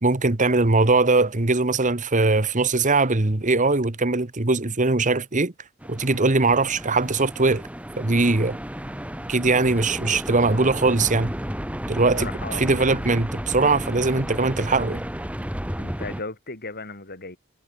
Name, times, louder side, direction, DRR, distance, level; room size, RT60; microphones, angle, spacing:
voice 1, 0.0-5.5 5.9-7.7 8.0-8.6 9.3-11.3 11.9-15.0, right 3 dB, 35° right, 1.3 m, -21 dB
sound 1, 5.8-16.2, equal, 5° right, 2.3 m, -33 dB
voice 2, 12.2-12.7 15.8-17.4, left 3 dB, 45° left, 6.2 m, -36 dB
head